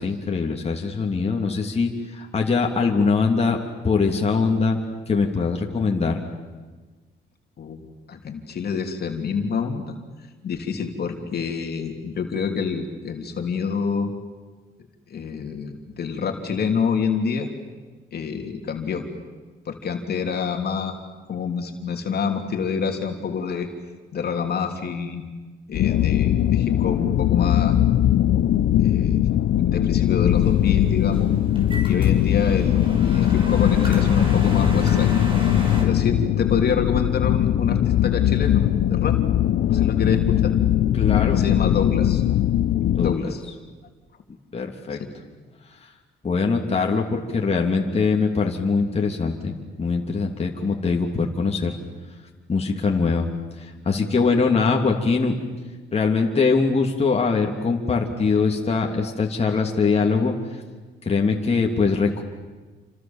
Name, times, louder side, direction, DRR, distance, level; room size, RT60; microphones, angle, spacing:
voice 1, 0.0-3.6 3.8-4.8 5.1-6.2 40.9-41.4 43.0-43.2 44.5-45.0 46.2-49.5 49.8-51.8 52.5-53.3 53.6-55.3 55.9-60.3 61.0-62.2, left 4 dB, 30° left, 1 dB, 3.0 m, -22 dB
voice 2, 8.1-10.0 10.4-14.1 15.1-17.5 18.1-19.1 19.6-20.9 21.3-23.7 24.1-25.2 25.7-27.8 28.8-29.3 29.6-31.3 31.8-35.1 35.8-39.2 39.7-40.5 41.3-42.2 43.0-43.4 44.9-45.1, left 6 dB, 55° left, 3 dB, 3.2 m, -27 dB
sound 1, 25.7-43.1, left 12 dB, 70° left, 0.9 m, -20 dB
sound 2, 30.3-35.8, right 1 dB, 25° right, 7.3 m, -32 dB
29.0 x 26.0 x 7.4 m, 1.3 s
cardioid pair, 90°, 20 cm